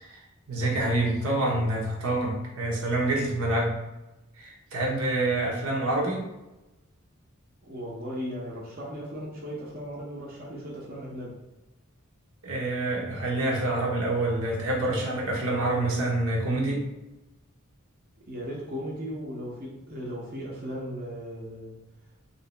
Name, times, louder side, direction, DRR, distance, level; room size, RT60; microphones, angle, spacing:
voice 1, 0.5-3.7 4.4-6.3 12.4-16.8, right 2 dB, 80° right, -3 dB, 1.0 m, -27 dB
voice 2, 7.6-11.3 18.3-21.8, equal, 45° right, -4 dB, 0.8 m, -37 dB
3.2 x 2.8 x 3.2 m, 0.99 s
head